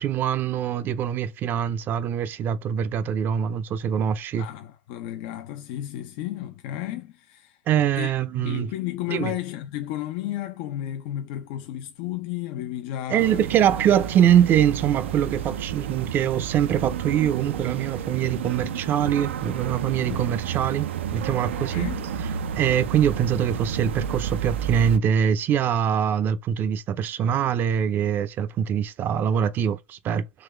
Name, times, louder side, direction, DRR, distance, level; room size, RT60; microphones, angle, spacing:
voice 1, 0.0-4.5 7.7-8.7 9.1-9.3 13.1-21.9 22.6-30.2, right 9 dB, 30° right, 0.6 m, -23 dB
voice 2, 4.4-7.6 8.0-13.5 13.9-14.0 20.0-20.3 21.7-22.1, left 13 dB, 55° left, 0.6 m, -33 dB
sound 1, 13.2-25.0, right 8 dB, 85° right, 0.6 m, -31 dB
3.9 x 3.1 x 3.2 m
supercardioid pair, 130°, 6 cm